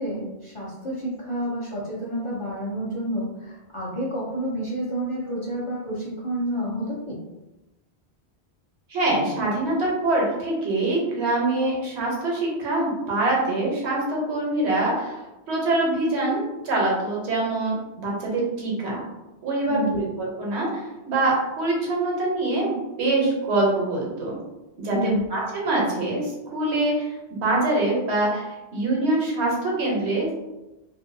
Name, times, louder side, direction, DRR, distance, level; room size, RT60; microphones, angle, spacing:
voice 1, 0.0-7.2 19.7-20.0 24.9-25.3, equal, 45° left, -7 dB, 0.4 m, -29 dB
voice 2, 8.9-15.2 15.5-19.0 19.4-24.4 24.8-27.1 27.4-30.3, right 2 dB, 85° right, -3 dB, 1.1 m, -24 dB
2.6 x 2.2 x 2.6 m, 1.0 s
omnidirectional pair, 1.1 m